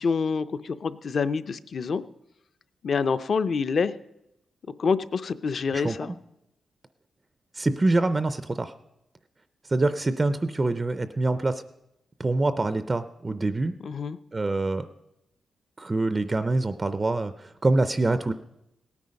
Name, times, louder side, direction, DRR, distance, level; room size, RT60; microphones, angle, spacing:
voice 1, 0.0-2.0 2.8-3.9 4.8-6.1 13.8-14.2, left 5 dB, 45° left, 14 dB, 0.5 m, -26 dB
voice 2, 5.7-6.2 7.5-8.7 9.7-11.6 12.2-13.7 14.3-14.9 15.8-18.3, right 2 dB, 20° right, 12 dB, 0.4 m, -25 dB
17.5 x 9.5 x 5.2 m, 0.85 s
wide cardioid pair, 175°, 0 cm